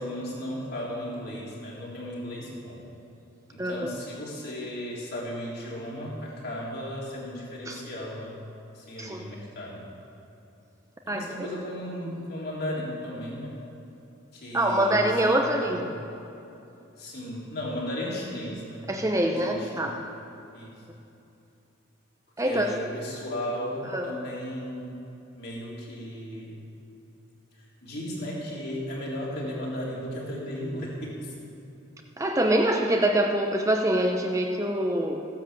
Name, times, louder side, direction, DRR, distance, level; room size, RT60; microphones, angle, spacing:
voice 1, 0.0-2.8 3.5-8.3 8.7-9.8 11.1-13.6 14.3-15.9 17.0-18.9 19.2-20.0 20.5-20.7 22.4-25.0 25.4-26.5 27.8-31.3, equal, 50° left, -5 dB, 3.7 m, -35 dB
voice 2, 3.6-3.9 7.7-7.8 9.0-9.2 11.1-11.5 14.5-15.8 18.9-20.0 22.4-22.7 23.9-24.1 32.2-35.3, right 1 dB, 15° right, 2 dB, 0.8 m, -25 dB
15.0 x 10.5 x 7.5 m, 2.8 s
head